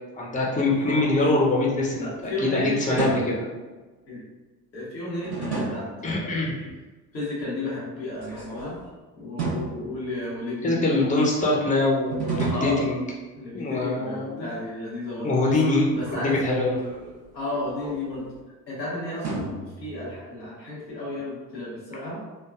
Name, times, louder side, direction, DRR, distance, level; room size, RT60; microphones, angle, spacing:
voice 1, 0.2-3.2 6.0-6.6 10.6-13.0 13.5-14.5 15.2-16.8, left 2 dB, 15° left, -3 dB, 0.8 m, -24 dB
sound 1, 0.6-2.3 3.0-3.6 5.2-6.1 8.1-8.9 9.4-10.5 12.1-13.5 15.9-18.4 19.2-20.2, right 3 dB, 60° right, 1.2 m, -34 dB
voice 2, 2.0-3.2 4.1-4.2 4.7-6.5 7.1-8.8 9.1-11.0 12.5-12.8 13.4-15.6 15.9-16.5 17.3-18.3 18.7-22.2, left 1 dB, 90° left, -7 dB, 1.0 m, -32 dB
3.3 x 2.2 x 2.4 m, 1.2 s
figure-of-eight pair, 50°, 49 cm